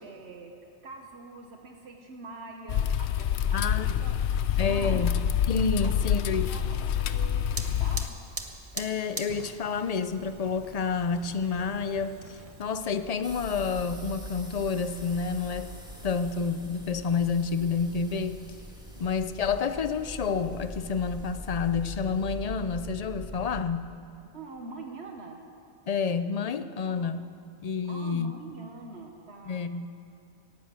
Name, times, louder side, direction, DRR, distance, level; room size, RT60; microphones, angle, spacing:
voice 1, 0.0-0.5 0.8-5.1 5.8-6.1 6.4-8.2 18.9-19.1 24.2-25.4 26.8-27.3 27.9-29.6, right 3 dB, 75° right, 3 dB, 1.4 m, -45 dB
sound 1, 2.7-8.1, left 9 dB, 80° left, 0.9 m, -27 dB
voice 2, 3.5-4.1 4.6-5.1 5.5-6.5 8.7-15.8 16.0-18.4 19.0-24.0 25.9-27.3 27.6-28.3 29.5-29.9, left 5 dB, 45° left, 12 dB, 0.6 m, -29 dB
Fire, 7.5-13.2, right 3 dB, 35° right, 1.0 m, -42 dB
sound 2, 13.2-23.6, equal, 5° right, 1.9 m, -42 dB
18.0 x 10.5 x 7.6 m, 2.5 s
omnidirectional pair, 1.1 m